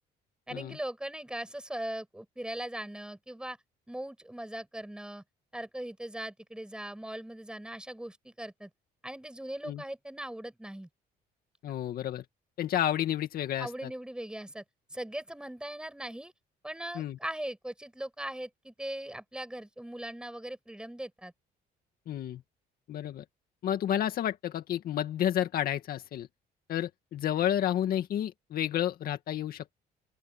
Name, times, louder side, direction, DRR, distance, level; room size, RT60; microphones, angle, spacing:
voice 1, 0.5-3.6 3.9-5.2 5.5-8.7 9.0-10.9 13.6-14.6 14.9-16.3 16.6-21.3, right 1 dB, 5° right, 7.4 m, -39 dB
voice 2, 11.6-12.2 12.6-13.9 16.9-17.2 22.1-22.4 22.9-23.2 23.6-26.3 26.7-29.7, left 11 dB, 60° left, 2.1 m, -31 dB
open air
cardioid pair, 110°, 17 cm